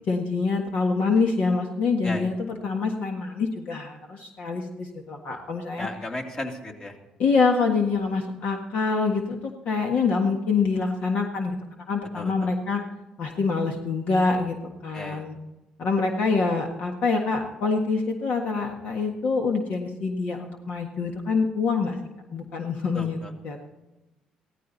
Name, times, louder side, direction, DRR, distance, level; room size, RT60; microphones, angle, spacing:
voice 1, 0.1-5.9 7.2-9.4 9.7-11.6 11.9-12.8 13.2-14.6 14.8-15.4 15.8-22.0 22.3-23.2 23.4-23.6, left 4 dB, 65° left, 3 dB, 1.6 m, -25 dB
voice 2, 5.7-7.0 12.1-12.5 14.9-15.3 22.9-23.3, left 2 dB, 30° left, 2 dB, 2.6 m, -35 dB
16.5 x 14.0 x 4.1 m, 1.0 s
supercardioid pair, 70°, 3 cm